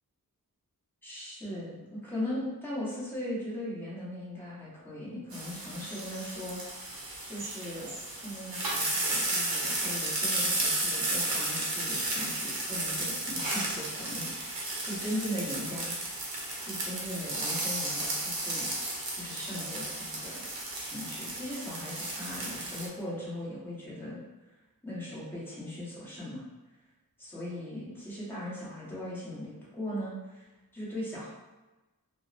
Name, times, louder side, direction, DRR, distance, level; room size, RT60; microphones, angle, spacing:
voice 1, 1.0-15.9 16.6-18.7 19.1-20.4 20.8-24.2 24.8-26.4 27.2-30.5 30.7-31.3, left 1 dB, 5° left, -9 dB, 1.0 m, -39 dB
sound 1, 5.3-22.9, right 2 dB, 75° right, 0.6 m, -33 dB
2.8 x 2.0 x 2.4 m, 1.1 s
wide cardioid pair, 80°, 36 cm